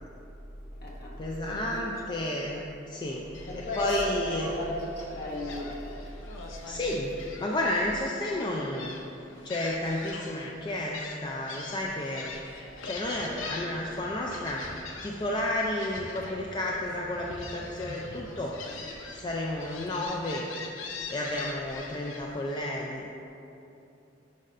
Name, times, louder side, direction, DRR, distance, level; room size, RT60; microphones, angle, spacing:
voice 1, 0.5-1.8 2.0-2.1 3.5-6.8, equal, 50° left, -4 dB, 1.3 m, -36 dB
voice 2, 1.2-3.3 3.5-4.5 6.7-7.1 7.4-8.9 9.4-12.3 12.8-14.6 15.0-18.6 19.1-20.5 21.1-23.1, left 1 dB, 25° left, -2 dB, 0.4 m, -31 dB
Gull seagull, 3.3-22.4, left 3 dB, 80° left, 0.6 m, -43 dB
sound 1, 12.3-20.0, right 1 dB, 60° right, 0.8 m, -49 dB
10.5 x 5.3 x 2.5 m, 2.8 s
head